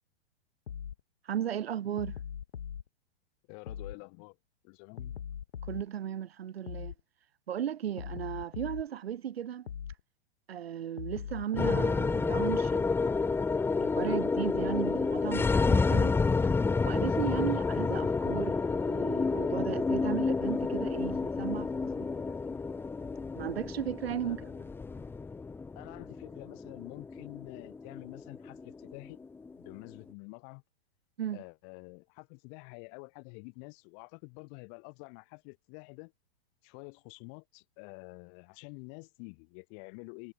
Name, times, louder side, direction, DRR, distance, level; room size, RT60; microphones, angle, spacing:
sound 1, 0.7-1.0 2.0-2.8 3.7-4.0 5.0-5.9 6.7-7.0 8.0-8.9 9.7-10.0 11.0-11.9, left 8 dB, 80° left, 1.0 m, -40 dB
voice 1, 1.2-2.2 5.7-6.9 7.5-9.7 10.5-13.4 13.8-16.1 16.8-22.3 23.4-24.4 31.2-31.4, right 10 dB, 70° right, 1.5 m, -36 dB
voice 2, 3.5-4.4 4.6-5.2 17.4-17.5 24.2-24.7 25.7-29.2 29.6-30.6 31.3-36.1 36.6-40.3, left 40 dB or more, 45° left, 7.9 m, -48 dB
sound 2, 11.6-29.9, left 4 dB, 5° left, 0.7 m, -30 dB
hypercardioid pair, 110°, 31 cm